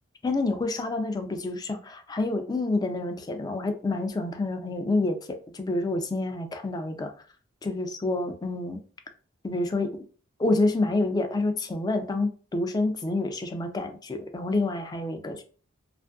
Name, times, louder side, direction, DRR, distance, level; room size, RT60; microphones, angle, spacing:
voice 1, 0.2-7.1 7.6-8.8 9.4-10.1 10.4-15.4, left 2 dB, 20° left, 0.3 m, -28 dB
2.5 x 2.4 x 2.3 m
head